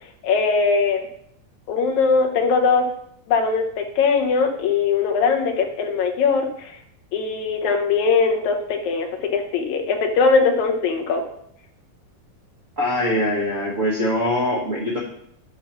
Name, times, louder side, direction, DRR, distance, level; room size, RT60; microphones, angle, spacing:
voice 1, 0.2-1.0 1.7-2.9 3.3-6.7 7.1-9.1 9.3-11.2, left 5 dB, 70° left, 3 dB, 2.1 m, -20 dB
voice 2, 12.8-15.0, left 1 dB, 85° right, -3 dB, 0.7 m, -22 dB
7.7 x 5.3 x 5.9 m, 0.71 s
omnidirectional pair, 3.7 m